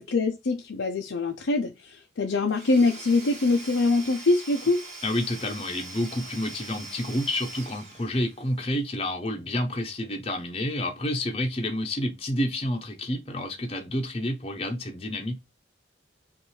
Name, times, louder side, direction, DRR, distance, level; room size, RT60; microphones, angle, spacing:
voice 1, 0.0-4.8, left 3 dB, 90° left, 0.6 m, -24 dB
Domestic sounds home sounds / Tools, 2.5-8.6, right 2 dB, 35° right, 1.8 m, -42 dB
voice 2, 5.0-15.3, left 1 dB, 30° left, 0.7 m, -29 dB
5.5 x 2.6 x 3.1 m
head